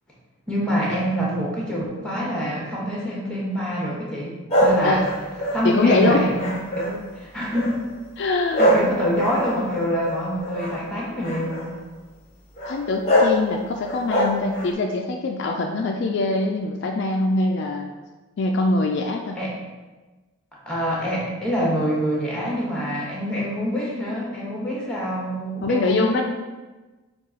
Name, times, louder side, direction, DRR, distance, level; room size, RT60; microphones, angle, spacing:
voice 1, 0.5-5.1 5.5-7.8 8.6-11.7 19.4-19.5 20.7-26.2, equal, 5° left, -4 dB, 0.9 m, -26 dB
sound 1, 4.5-7.1 7.5-7.9 8.5-10.8 11.2-11.7 12.6-12.7 13.0-13.4 13.8-14.7, equal, 30° left, 0.8 m, -23 dB
voice 2, 5.6-6.3 8.2-8.6 12.6-17.9 18.4-19.4 25.6-26.2, left 2 dB, 55° left, 2 dB, 0.3 m, -23 dB
5.5 x 2.4 x 3.7 m, 1.2 s
head